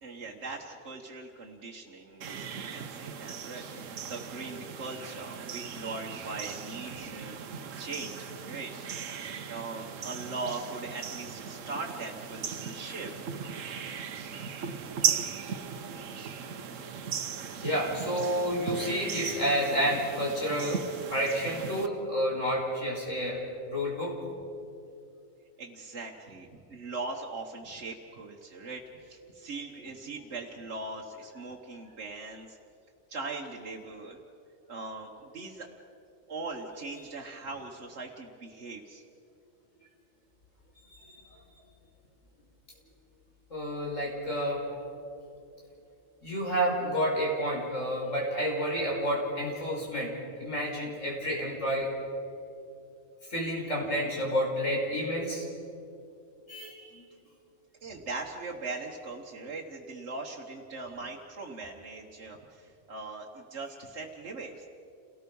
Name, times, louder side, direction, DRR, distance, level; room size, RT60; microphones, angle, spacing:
voice 1, 0.0-8.7 9.5-13.2 25.6-32.6 33.1-34.2 34.7-35.7 36.3-39.0 57.8-64.7, right 3 dB, 60° right, -2 dB, 1.6 m, -40 dB
sound 1, 2.2-21.9, right 7 dB, 80° right, 1.3 m, -37 dB
voice 2, 17.6-20.8 21.1-23.4 23.7-24.1 41.1-41.2 43.5-44.6 46.2-50.1 50.4-51.9 53.3-55.5 56.5-57.0, equal, 75° left, -3 dB, 5.8 m, -30 dB
28.5 x 18.5 x 5.5 m, 2.6 s
omnidirectional pair, 1.3 m